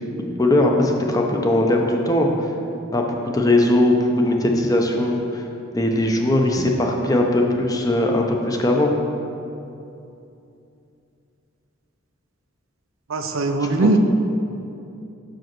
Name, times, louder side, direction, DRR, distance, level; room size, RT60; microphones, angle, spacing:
voice 1, 0.2-2.5 2.9-5.4 5.7-8.9 13.8-13.9, left 1 dB, 15° left, 1 dB, 0.6 m, -19 dB
voice 2, 13.1-14.0, right 3 dB, 75° right, 6 dB, 0.6 m, -20 dB
6.3 x 5.1 x 6.0 m, 2.7 s
head